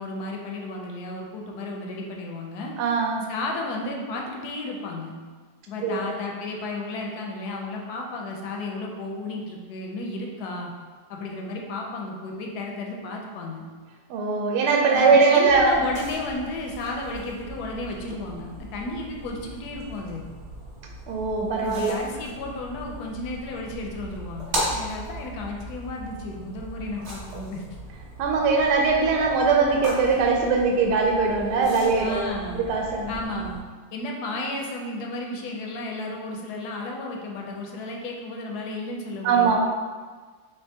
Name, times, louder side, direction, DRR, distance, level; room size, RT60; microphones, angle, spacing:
voice 1, 0.0-2.7 3.3-5.2 5.7-10.7 11.1-13.6 14.9-20.3 21.6-27.6 31.9-32.6 33.1-33.6 33.9-39.6, left 2 dB, 80° left, 0 dB, 1.1 m, -33 dB
voice 2, 2.8-3.2 5.8-6.1 14.1-15.7 21.1-22.0 28.2-33.2 39.2-39.6, right 4 dB, 80° right, 1 dB, 1.1 m, -21 dB
sound 1, 15.5-33.6, right 1 dB, 50° right, 1.0 m, -38 dB
3.8 x 3.4 x 2.7 m, 1.5 s
omnidirectional pair, 1.7 m